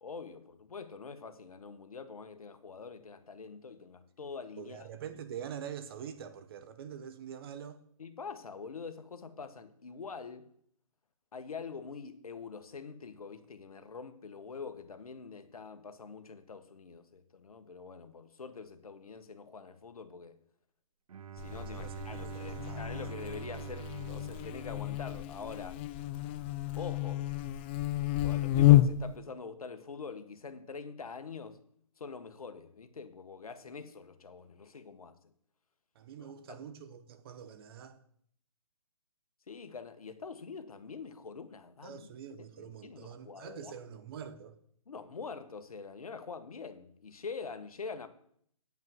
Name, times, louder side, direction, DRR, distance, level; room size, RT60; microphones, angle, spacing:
voice 1, 0.0-4.9 8.0-10.5 11.3-20.4 21.3-25.8 26.8-27.2 28.2-31.6 32.0-35.1 36.2-36.6 39.5-42.1 42.6-43.7 44.9-48.1, left 5 dB, 85° left, 1.3 m, -45 dB
voice 2, 4.6-7.8 21.7-22.9 35.9-38.0 41.8-44.5, right 8 dB, 40° right, 1.0 m, -45 dB
Bowed string instrument, 21.1-25.8, right 10 dB, 75° right, 0.5 m, -45 dB
Buzz, 21.4-29.2, left 15 dB, 20° left, 0.3 m, -30 dB
9.3 x 5.6 x 7.7 m
hypercardioid pair, 145°, 18 cm